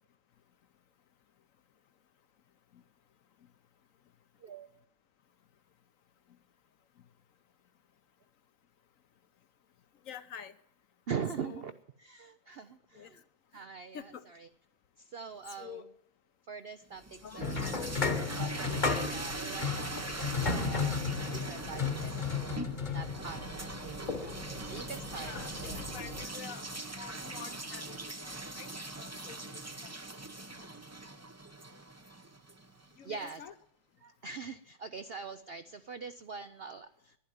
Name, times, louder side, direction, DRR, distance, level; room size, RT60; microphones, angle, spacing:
voice 1, 10.0-10.6 11.4-11.6 12.9-13.2 13.9-14.3 15.6-15.8 17.2-17.5 22.8-23.0 25.2-26.7 27.0-30.0 33.0-33.5, left 8 dB, 60° left, 12 dB, 1.0 m, -48 dB
voice 2, 11.1-11.7 12.0-13.2 13.5-14.5 15.0-15.9 16.4-17.7 18.4-21.0 21.3-24.4 24.7-25.3 25.6-25.8 33.0-33.4 34.0-37.2, right 6 dB, 80° right, 10 dB, 0.5 m, -43 dB
sound 1, 16.9-32.9, right 2 dB, 25° right, 0.3 m, -41 dB
sound 2, 17.4-26.3, left 5 dB, 30° left, 1.1 m, -35 dB
11.5 x 10.5 x 9.2 m, 0.77 s
omnidirectional pair, 1.9 m